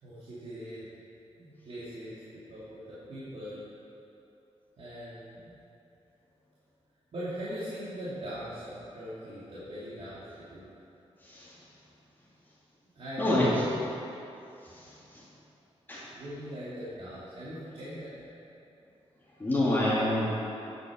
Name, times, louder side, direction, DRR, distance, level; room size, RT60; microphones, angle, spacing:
voice 1, 0.0-0.9 1.4-2.2 2.5-3.6 4.8-5.5 7.1-10.2 10.5-10.7 12.9-13.6 16.1-18.1, equal, 65° right, -12 dB, 2.8 m, -40 dB
voice 2, 13.2-13.5 14.7-15.2 15.9-16.0 19.4-20.3, left 1 dB, 20° left, -9 dB, 2.0 m, -27 dB
8.9 x 8.6 x 6.1 m, 2.8 s
wide cardioid pair, 120°, 11 cm